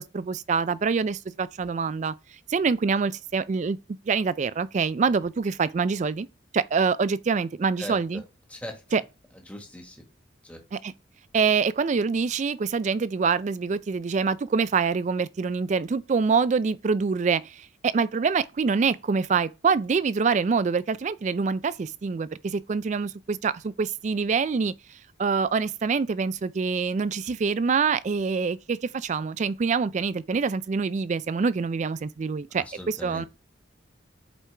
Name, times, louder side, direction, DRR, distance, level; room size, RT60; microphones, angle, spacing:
voice 1, 0.0-2.1 2.5-3.8 4.1-6.3 6.5-8.2 8.9-9.0 10.7-10.9 11.3-24.7 25.2-33.2, right 5 dB, 40° right, 0.3 m, -25 dB
voice 2, 8.5-8.8 9.5-10.0 10.4-10.6 32.8-33.3, left 1 dB, 5° left, 1.4 m, -39 dB
8.2 x 4.6 x 3.4 m
head